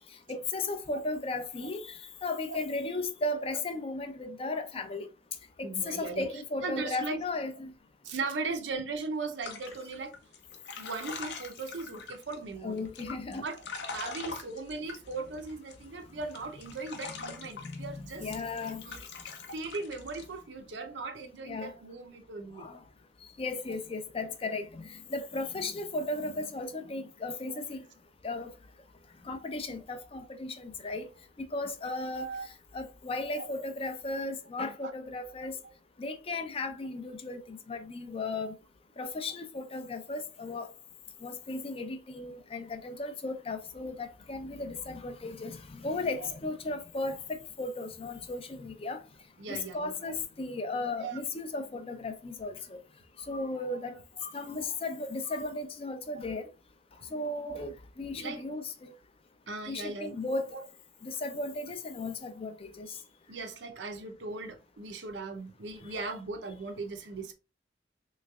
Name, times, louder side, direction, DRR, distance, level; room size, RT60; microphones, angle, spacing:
voice 1, 0.3-5.1 5.6-7.7 12.6-13.4 17.6-17.9 18.2-18.8 21.4-21.7 22.6-22.8 23.4-27.8 28.2-28.5 29.3-31.1 31.5-32.3 32.7-35.5 36.0-38.5 39.0-40.7 41.2-49.0 49.5-52.6 53.3-53.9 54.2-56.5 57.1-58.9 59.7-60.5 61.0-62.9, left 2 dB, 30° left, 0.4 m, -35 dB
voice 2, 5.6-6.3 6.6-7.2 8.0-10.1 10.8-12.8 13.3-13.6 13.9-18.3 18.8-19.0 19.5-22.7 32.1-32.5 33.4-33.5 34.8-34.9 35.6-35.7 36.3-36.4 46.2-46.3 49.4-50.1 51.0-51.2 53.7-54.0 57.4-57.7 58.1-58.4 59.5-60.2 60.5-60.7 63.3-67.3, right 3 dB, 90° right, 0.6 m, -38 dB
sound 1, 9.4-12.4 12.8-15.8 16.2-17.8 18.3-20.2, left 4 dB, 70° left, 0.6 m, -43 dB
3.3 x 3.1 x 2.3 m
head